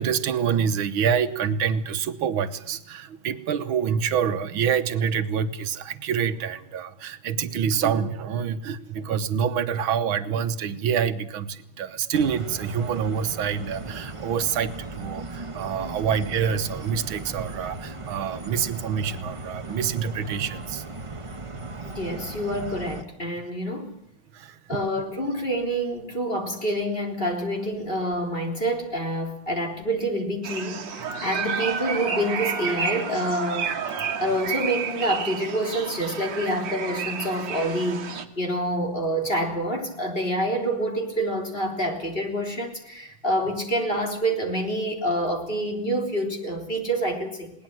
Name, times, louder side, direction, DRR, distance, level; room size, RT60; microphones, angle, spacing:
voice 1, 0.0-20.9 21.6-21.8 24.3-24.8, right 7 dB, 80° right, 10 dB, 1.8 m, -26 dB
sound 1, 12.1-23.0, right 2 dB, 20° right, 0.9 m, -37 dB
voice 2, 21.8-23.9 24.7-33.7 34.2-38.0 38.4-47.5, right 1 dB, 25° left, 3 dB, 3.7 m, -27 dB
sound 2, 30.4-38.2, right 6 dB, 65° right, 2.2 m, -30 dB
20.5 x 19.0 x 7.6 m, 0.71 s
omnidirectional pair, 2.2 m